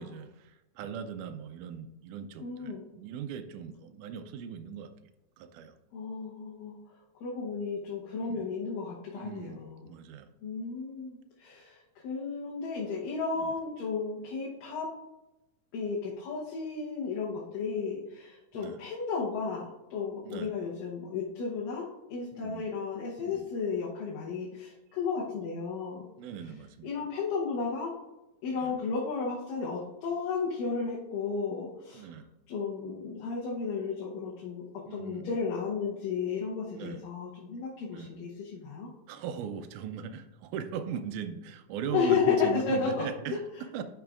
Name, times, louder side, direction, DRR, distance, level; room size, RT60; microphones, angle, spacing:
voice 1, 0.0-4.9 5.4-5.8 8.2-8.5 9.2-10.3 13.4-13.6 18.5-18.8 20.2-20.5 22.3-22.7 23.2-23.5 26.2-27.1 28.6-28.8 31.9-32.3 34.9-35.4 36.7-37.0 37.9-38.2 39.1-43.8, right 7 dB, 80° right, 9 dB, 2.0 m, -39 dB
voice 2, 2.4-2.8 5.9-6.8 7.2-9.8 10.4-11.8 12.0-14.9 15.7-26.1 26.8-27.9 28.4-32.1 32.5-34.6 34.9-38.9 41.9-43.0, left 5 dB, 90° left, -4 dB, 2.7 m, -33 dB
11.0 x 5.6 x 2.4 m, 0.96 s
omnidirectional pair, 3.7 m